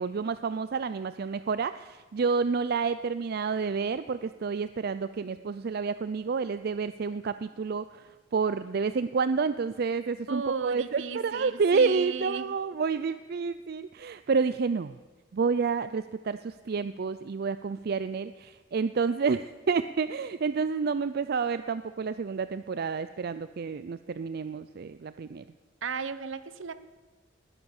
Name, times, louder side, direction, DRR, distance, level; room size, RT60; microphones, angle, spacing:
voice 1, 0.0-15.0 15.3-25.4, right 5 dB, 50° right, 13 dB, 0.4 m, -29 dB
voice 2, 10.3-12.5 25.8-26.7, right 5 dB, 70° right, 14 dB, 0.9 m, -35 dB
19.5 x 10.5 x 7.1 m, 1.2 s
head